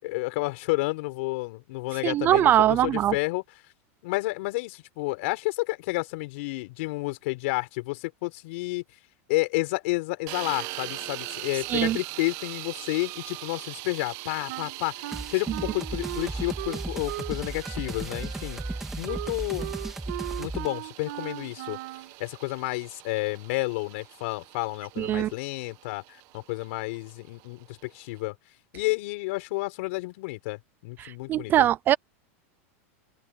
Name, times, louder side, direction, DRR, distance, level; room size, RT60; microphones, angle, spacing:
voice 1, 0.0-3.4 4.0-8.8 9.3-18.6 19.0-19.7 20.4-21.8 22.2-28.3 28.7-31.7, left 23 dB, 60° left, 5.4 m, -30 dB
voice 2, 2.0-3.1 11.7-12.0 25.0-25.3 31.0-32.0, right 12 dB, 25° right, 0.3 m, -22 dB
sound 1, 10.3-28.2, right 19 dB, 45° right, 1.7 m, -42 dB
Wind instrument woodwind instrument, 14.5-17.4 17.6-22.1, right 20 dB, 60° right, 1.6 m, -38 dB
sound 2, 15.1-20.7, right 2 dB, 5° right, 2.8 m, -35 dB
open air
supercardioid pair, 150°, 8 cm